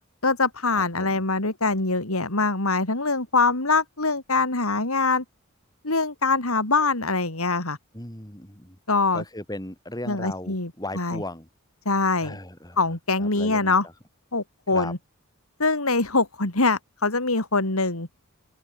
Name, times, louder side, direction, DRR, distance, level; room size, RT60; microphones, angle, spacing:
voice 1, 0.2-5.2 5.8-7.8 8.9-9.2 10.1-10.7 11.0-11.2 11.9-12.4 12.8-13.9 14.3-15.0 15.6-18.1, left 3 dB, 80° left, 3.7 m, -23 dB
voice 2, 0.7-1.2 7.9-8.8 9.1-11.5 12.2-12.8 13.2-13.7 14.7-14.9, left 1 dB, 15° left, 4.4 m, -36 dB
open air
head